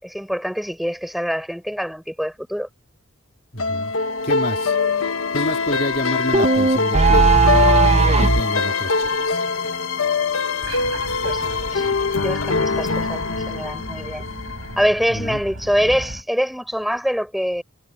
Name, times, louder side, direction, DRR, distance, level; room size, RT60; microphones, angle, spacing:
voice 1, 0.0-2.7 11.2-11.9 12.2-14.2 14.8-17.6, equal, ahead, 6.2 m, -24 dB
voice 2, 3.5-3.9 4.2-4.8 5.0-9.4 15.1-15.4, left 1 dB, 45° left, 3.2 m, -28 dB
sound 1, 3.6-14.8, left 4 dB, 85° left, 1.2 m, -23 dB
sound 2, 6.3-8.5, right 4 dB, 30° right, 0.6 m, -15 dB
sound 3, 10.6-16.2, right 1 dB, 80° right, 6.3 m, -36 dB
head